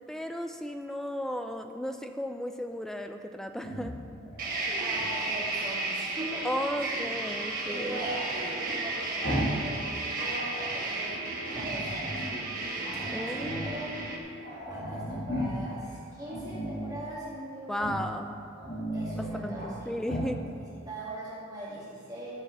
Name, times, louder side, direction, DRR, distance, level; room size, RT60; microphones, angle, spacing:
voice 1, 0.1-3.9 6.4-8.0 12.8-13.8 17.7-18.4 19.2-20.4, equal, ahead, 6 dB, 0.4 m, -35 dB
Growling, 3.5-5.6 7.9-9.7 10.0-10.9 11.5-12.4 12.8-13.8 14.1-14.2 14.4-15.7 16.2-17.0 17.7-18.2 18.5-19.7 20.0-20.4, equal, 45° left, 2.0 m, -36 dB
sound 1, 4.4-14.2, right 2 dB, 40° right, 1.5 m, -33 dB
voice 2, 4.5-6.5 6.7-6.9 7.7-9.8 10.1-11.2 11.6-12.2 13.1-14.0 14.7-17.7 18.9-20.0 20.9-22.3, right 1 dB, 20° right, -9 dB, 2.5 m, -40 dB
13.0 x 5.9 x 6.8 m, 2.5 s
head